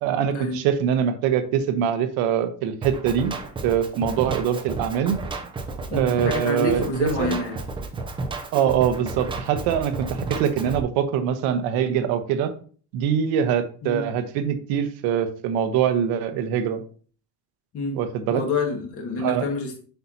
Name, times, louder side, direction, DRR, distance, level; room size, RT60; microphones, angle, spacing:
voice 1, 0.0-3.3 3.6-5.2 5.9-7.4 8.5-12.5 12.9-16.8 17.9-18.4 19.2-19.5, right 8 dB, 75° right, 9 dB, 1.1 m, -23 dB
Drum kit, 2.8-10.8, right 3 dB, 15° right, 0.6 m, -32 dB
voice 2, 5.9-7.6 13.8-14.1 17.7-18.0 18.3-19.8, left 3 dB, 40° left, 2 dB, 1.9 m, -27 dB
8.1 x 5.8 x 2.8 m, 0.42 s
cardioid pair, 165°, 36 cm